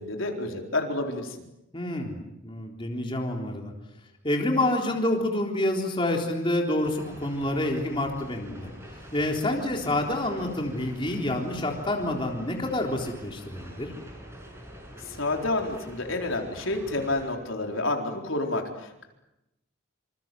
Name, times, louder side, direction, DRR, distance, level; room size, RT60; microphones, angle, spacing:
voice 1, 0.0-1.4 15.0-19.0, left 2 dB, 70° left, 2 dB, 4.3 m, -29 dB
voice 2, 1.7-2.2 2.4-3.7 4.2-8.7 9.1-13.9, left 1 dB, 25° left, 1 dB, 3.8 m, -28 dB
sound 1, 6.8-17.3, equal, 10° right, 6.6 m, -45 dB
27.5 x 27.5 x 7.8 m, 0.90 s
head